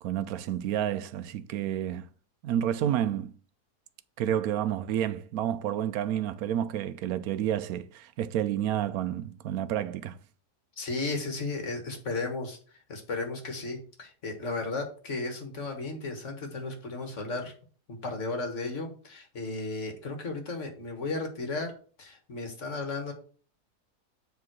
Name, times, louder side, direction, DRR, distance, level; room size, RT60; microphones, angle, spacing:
voice 1, 0.0-2.1 2.4-3.3 4.2-10.2, right 10 dB, 70° right, 1.0 m, -30 dB
voice 2, 10.8-17.5 17.9-21.7 22.0-23.1, left 3 dB, 50° left, 1.9 m, -34 dB
7.4 x 3.8 x 6.1 m
omnidirectional pair, 1.7 m